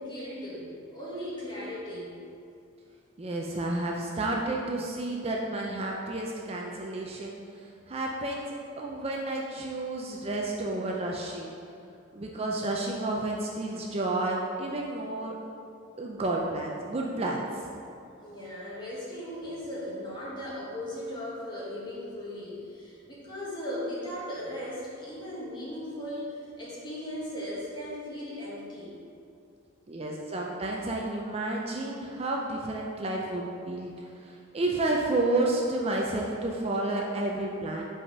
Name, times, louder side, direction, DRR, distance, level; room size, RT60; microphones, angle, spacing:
voice 1, 0.0-2.1 18.1-28.9, left 1 dB, 25° left, -7 dB, 1.6 m, -37 dB
voice 2, 3.2-7.4 7.9-8.4 8.8-11.5 12.1-15.3 16.0-17.7 29.9-37.8, right 2 dB, 30° right, -1 dB, 0.5 m, -31 dB
5.5 x 4.9 x 5.4 m, 2.6 s
head